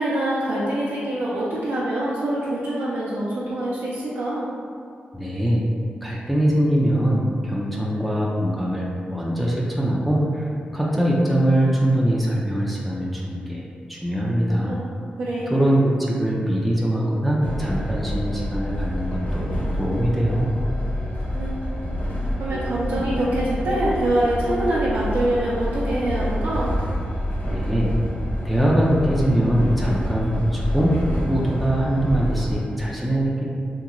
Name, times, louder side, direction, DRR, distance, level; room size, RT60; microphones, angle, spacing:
voice 1, 0.0-4.5 14.6-14.8 15.2-15.6 21.3-21.6 22.4-26.7, right 1 dB, 80° right, -8 dB, 0.5 m, -24 dB
voice 2, 5.1-5.6 6.0-13.6 13.9-14.7 15.5-20.5 27.5-27.9 28.4-31.0 31.3-33.4, right 1 dB, ahead, -5 dB, 0.4 m, -22 dB
Train, 17.4-32.6, equal, 60° left, 0.6 m, -27 dB
2.9 x 2.7 x 2.5 m, 2.3 s
wide cardioid pair, 115°, 3 cm